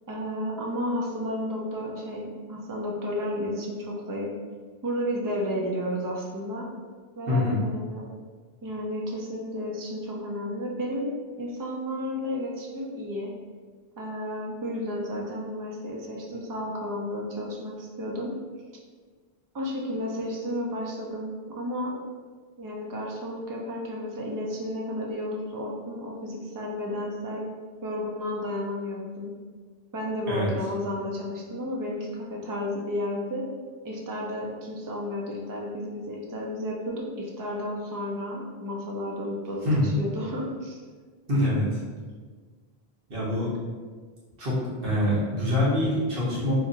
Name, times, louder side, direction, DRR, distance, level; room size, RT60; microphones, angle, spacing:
voice 1, 0.1-4.3 4.8-6.7 7.2-8.1 8.6-11.1 11.4-13.3 14.0-18.3 19.5-22.0 22.6-27.5 27.8-29.3 29.9-33.4 33.8-40.8, left 1 dB, 30° right, -2 dB, 0.4 m, -32 dB
voice 2, 7.3-7.6 30.3-30.5 39.6-39.9 41.3-41.8 43.1-43.5 44.4-46.5, left 1 dB, 65° right, -8 dB, 1.2 m, -25 dB
2.8 x 2.6 x 3.9 m, 1.5 s
omnidirectional pair, 1.0 m